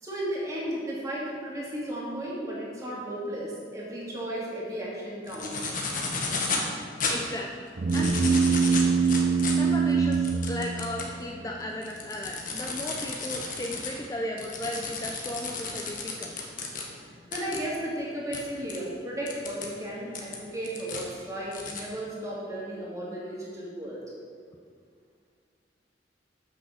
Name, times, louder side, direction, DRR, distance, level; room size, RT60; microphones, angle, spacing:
voice 1, 0.0-5.7 17.3-24.0, right 1 dB, 20° right, -6 dB, 2.4 m, -34 dB
sound 1, 5.3-6.7 7.0-7.1 7.7-11.1 11.6-16.8 17.3-17.6 18.3-18.4 18.7-18.8 19.3-19.7 20.1-21.0 21.5-21.8, left 4 dB, 50° left, 1.3 m, -33 dB
voice 2, 7.1-7.5 7.9-8.1 9.5-16.4 17.2-17.3, left 1 dB, 20° left, 0 dB, 0.5 m, -35 dB
sound 2, 7.8-11.5, right 5 dB, 45° right, 0.5 m, -24 dB
8.3 x 6.2 x 6.3 m, 2.2 s
head